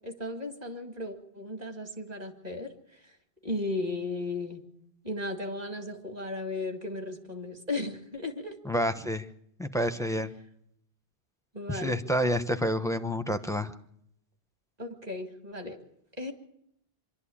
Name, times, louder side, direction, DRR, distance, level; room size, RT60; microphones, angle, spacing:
voice 1, 0.0-3.1 3.4-4.6 5.0-8.6 11.5-12.0 14.8-15.8 16.2-16.3, left 2 dB, 35° right, 4 dB, 2.3 m, -35 dB
voice 2, 8.7-9.3 9.6-10.3 11.7-13.7, equal, 5° left, 9 dB, 0.8 m, -28 dB
25.0 x 12.0 x 8.7 m, 0.76 s
omnidirectional pair, 1.1 m